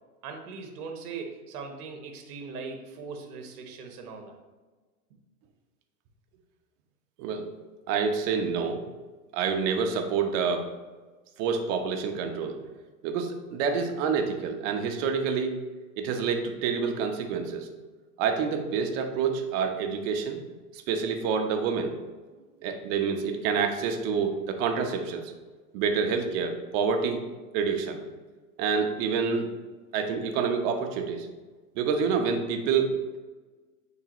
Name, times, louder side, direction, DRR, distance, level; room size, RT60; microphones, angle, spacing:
voice 1, 0.2-4.4, right 4 dB, 75° right, 4 dB, 1.2 m, -40 dB
voice 2, 7.2-7.5 7.9-8.8 9.3-10.7 11.4-12.6 13.0-15.6 16.0-17.7 18.2-20.4 20.7-21.9 22.6-25.3 25.7-27.2 27.5-28.0 28.6-29.5 29.9-31.3 31.7-33.2, right 6 dB, 55° right, 5 dB, 1.1 m, -27 dB
8.9 x 3.8 x 3.0 m, 1.3 s
hypercardioid pair, 110°, 45 cm